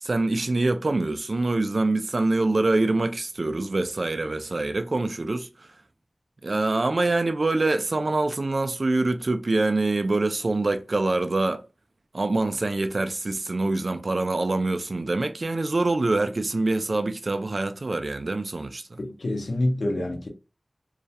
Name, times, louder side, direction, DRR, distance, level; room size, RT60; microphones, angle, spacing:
voice 1, 0.0-5.5 6.4-11.6 12.1-19.0, right 2 dB, 60° right, 0.3 m, -25 dB
voice 2, 19.0-20.3, left 1 dB, 90° left, 0.6 m, -27 dB
2.3 x 2.0 x 2.7 m
wide cardioid pair, 70°, 0 cm